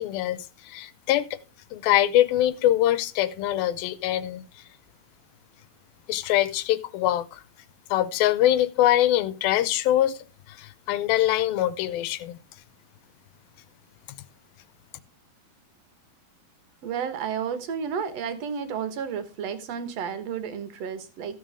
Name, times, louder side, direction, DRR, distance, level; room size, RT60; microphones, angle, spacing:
voice 1, 0.0-1.4 1.7-4.4 6.1-7.4 7.9-10.2 10.5-12.4, left 13 dB, 80° left, 2.5 m, -23 dB
voice 2, 16.8-21.4, right 7 dB, 55° right, 2.0 m, -32 dB
15.0 x 7.6 x 3.5 m
omnidirectional pair, 4.4 m